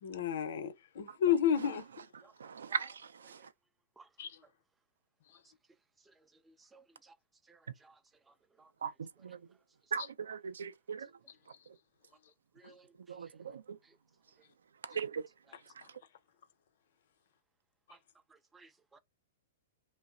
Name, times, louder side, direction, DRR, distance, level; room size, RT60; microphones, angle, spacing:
voice 1, 0.0-1.8 4.2-4.4 12.6-12.7, left 9 dB, 65° left, 0.6 m, -31 dB
voice 2, 2.4-3.4 8.8-9.4 9.9-11.1 13.1-13.8 14.8-15.2, right 6 dB, 85° right, 0.4 m, -39 dB
voice 3, 6.7-7.1 7.5-7.9 8.6-8.7 12.6-12.9 18.5-19.0, right 4 dB, 10° right, 0.4 m, -60 dB
2.9 x 2.0 x 2.4 m
hypercardioid pair, 130°, 0 cm